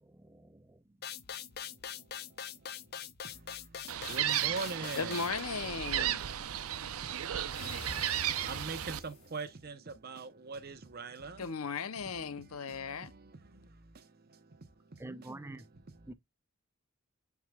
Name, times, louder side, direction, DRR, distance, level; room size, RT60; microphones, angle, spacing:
voice 1, 0.0-0.8 15.0-15.7 16.1-16.2, right 2 dB, 10° right, 0.4 m, -46 dB
sound 1, 1.0-5.4, left 8 dB, 50° left, 0.6 m, -43 dB
voice 2, 1.8-5.3 6.3-11.5 12.1-14.8 15.2-15.3 15.6-16.1, right 4 dB, 45° right, 0.8 m, -45 dB
sound 2, 3.9-5.7 7.5-9.4, left 3 dB, 30° left, 2.9 m, -49 dB
Gull seagull, 3.9-9.0, right 11 dB, 90° right, 0.6 m, -34 dB
voice 3, 5.0-6.3 11.4-13.1, left 5 dB, 85° left, 0.7 m, -37 dB
9.2 x 4.7 x 2.3 m
head